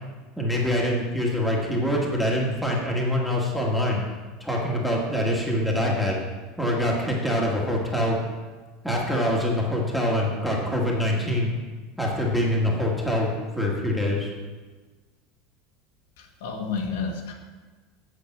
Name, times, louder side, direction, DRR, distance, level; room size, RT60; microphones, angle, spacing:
voice 1, 0.4-4.0 4.4-6.2 6.6-8.2 8.8-11.5 12.0-13.3 13.5-14.3, left 1 dB, ahead, -3 dB, 1.6 m, -24 dB
voice 2, 16.2-17.3, left 5 dB, 80° left, 1 dB, 1.7 m, -31 dB
8.1 x 6.0 x 7.3 m, 1.3 s
supercardioid pair, 160°, 0 cm